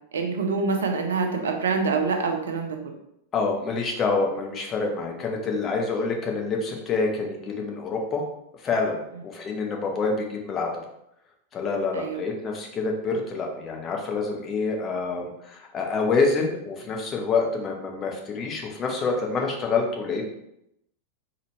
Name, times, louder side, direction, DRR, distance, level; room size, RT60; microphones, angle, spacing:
voice 1, 0.1-2.9 11.9-12.2, right 4 dB, 65° right, 4 dB, 0.7 m, -26 dB
voice 2, 3.3-8.2 8.6-10.7 11.5-20.3, left 4 dB, 25° left, 1 dB, 0.9 m, -27 dB
4.1 x 3.7 x 3.1 m, 0.80 s
figure-of-eight pair, 90°, 0 cm